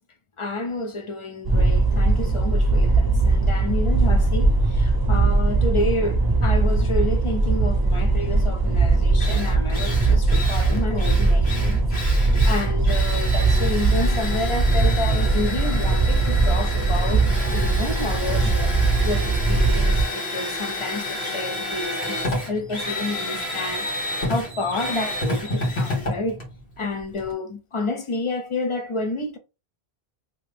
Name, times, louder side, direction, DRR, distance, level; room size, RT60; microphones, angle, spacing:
voice 1, 0.4-18.7 19.0-26.4 26.8-29.4, left 2 dB, 55° left, 0.3 m, -30 dB
sound 1, 1.4-20.0, right 3 dB, 25° right, 0.5 m, -20 dB
Drill, 8.7-8.8 9.2-27.3, left 1 dB, 90° left, 1.5 m, -30 dB
2.9 x 2.6 x 3.3 m
omnidirectional pair, 1.0 m